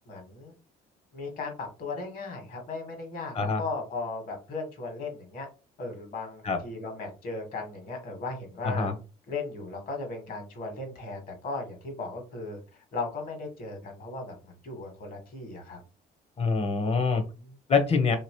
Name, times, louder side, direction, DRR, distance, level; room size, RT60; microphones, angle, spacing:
voice 1, 0.1-0.5 1.1-5.5 5.8-8.9 9.3-15.8 17.4-17.5, left 3 dB, 60° left, 3 dB, 1.5 m, -37 dB
voice 2, 8.6-8.9 16.4-17.2 17.7-18.2, left 4 dB, 35° left, 7 dB, 0.8 m, -25 dB
2.9 x 2.9 x 3.0 m, 0.32 s
cardioid pair, 110°, 17 cm